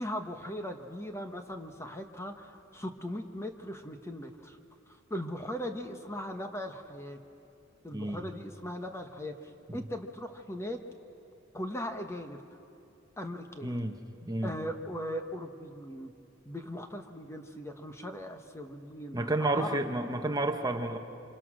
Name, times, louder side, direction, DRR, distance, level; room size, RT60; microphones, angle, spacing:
voice 1, 0.0-4.6 4.9-7.2 7.8-10.8 11.5-12.4 13.2-13.8 14.4-16.1 16.4-19.8, equal, 15° left, 5 dB, 1.1 m, -39 dB
voice 2, 7.9-8.3 9.7-9.8 13.6-13.9 14.2-14.5 19.1-21.0, right 2 dB, 20° right, 5 dB, 1.1 m, -31 dB
28.5 x 26.5 x 6.3 m, 2.7 s
head